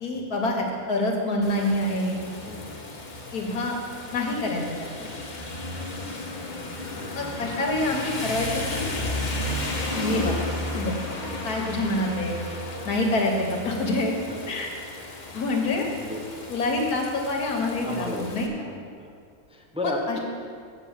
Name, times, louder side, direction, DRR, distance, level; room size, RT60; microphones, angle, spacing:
voice 1, 0.0-2.2 3.3-3.8 4.1-4.9 7.1-8.9 9.9-10.4 10.7-11.0 11.4-12.4 12.9-14.1 14.5-14.7 15.3-15.9 16.5-18.5 19.8-20.2, left 2 dB, 85° left, 1 dB, 1.8 m, -26 dB
Rain, 1.4-18.5, left 2 dB, 35° left, 1.0 m, -34 dB
voice 2, 7.0-7.3 11.2-11.5 14.3-14.4 15.8-16.2 17.8-19.1 19.5-20.2, left 2 dB, 5° right, 1 dB, 0.4 m, -34 dB
7.1 x 6.8 x 7.3 m, 2.2 s
omnidirectional pair, 1.6 m